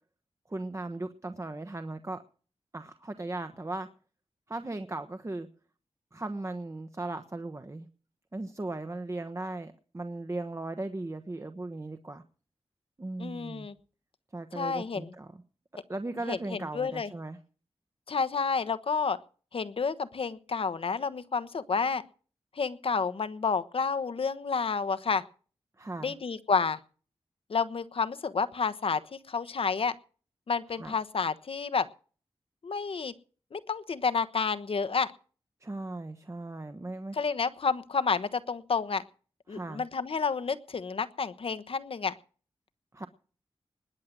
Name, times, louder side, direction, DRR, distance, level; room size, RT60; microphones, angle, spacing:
voice 1, 0.5-2.2 2.7-3.9 4.5-5.5 6.1-7.9 8.3-12.2 13.0-13.7 14.3-15.4 15.9-17.4 25.8-26.1 30.8-30.9 35.6-37.1 39.5-39.8 42.9-43.1, right 2 dB, 30° right, 8 dB, 1.2 m, -37 dB
voice 2, 13.2-13.7 14.5-15.1 16.3-17.1 18.1-19.2 19.5-22.0 22.5-25.2 26.0-26.8 27.5-29.9 30.5-31.9 32.6-33.1 33.5-35.1 37.1-39.0 39.5-42.1, left 5 dB, 65° left, 12 dB, 1.2 m, -30 dB
20.5 x 7.5 x 7.6 m, 0.41 s
wide cardioid pair, 75°, 10 cm